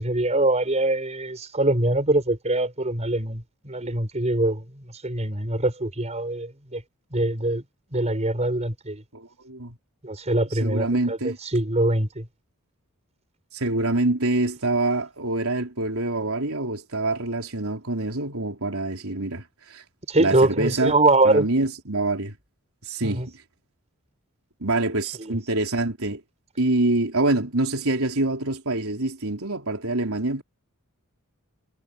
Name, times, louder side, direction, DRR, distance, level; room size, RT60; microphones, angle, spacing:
voice 1, 0.0-6.8 7.1-7.6 7.9-9.0 10.0-12.3 20.1-21.5 23.0-23.3 25.2-25.4, right 2 dB, 30° right, 5.3 m, -23 dB
voice 2, 9.1-9.7 10.6-11.4 13.5-19.8 20.2-21.0 21.2-22.3 22.8-23.2 24.6-26.2 26.6-30.4, right 2 dB, 70° right, 4.3 m, -25 dB
head